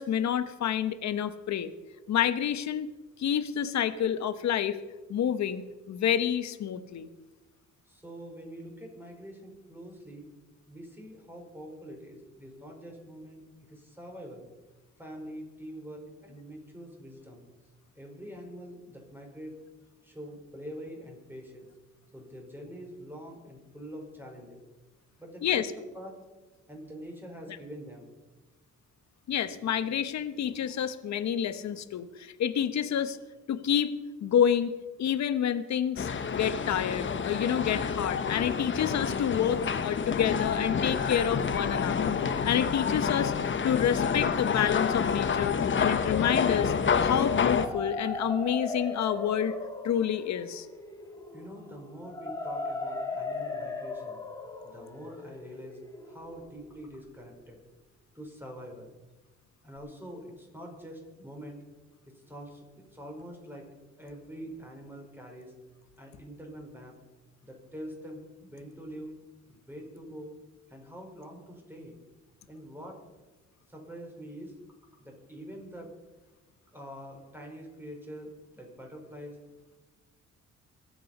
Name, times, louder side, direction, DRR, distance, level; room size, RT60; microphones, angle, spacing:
voice 1, 0.0-1.7 2.1-2.9 3.2-4.8 5.1-5.6 5.9-7.1 25.4-25.7 29.3-33.2 33.5-33.9 34.2-34.7 35.0-46.7 47.0-49.6 49.8-50.7, left 9 dB, 65° left, 12 dB, 1.1 m, -28 dB
voice 2, 7.9-10.3 10.6-14.4 15.0-17.4 17.9-19.6 20.0-21.7 22.1-24.6 25.2-26.2 26.7-28.1 51.3-54.3 54.6-55.8 56.0-57.6 58.1-58.9 59.6-61.6 62.1-63.7 64.0-65.5 66.0-66.9 67.4-69.2 69.5-70.3 70.7-72.0 72.5-73.0 73.7-74.5 75.0-75.9 76.7-79.4, equal, 5° right, 1 dB, 5.0 m, -45 dB
sound 1, 36.0-47.7, left 6 dB, 40° left, 1.2 m, -28 dB
sound 2, 47.4-57.1, left 3 dB, 10° left, 2.5 m, -38 dB
23.0 x 8.7 x 5.5 m, 1.2 s
cardioid pair, 90°, 30 cm